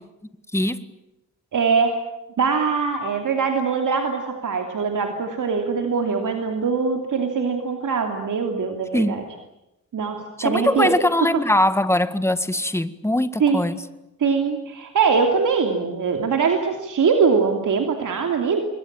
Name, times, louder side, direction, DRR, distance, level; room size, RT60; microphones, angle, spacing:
voice 1, 1.5-1.9 2.4-9.2 9.9-10.9 13.4-13.7 14.2-18.6, right 5 dB, 80° right, 3.0 m, -22 dB
voice 2, 10.4-13.8, left 1 dB, 10° left, 1.8 m, -21 dB
27.5 x 22.5 x 9.0 m
cardioid pair, 90°, 30 cm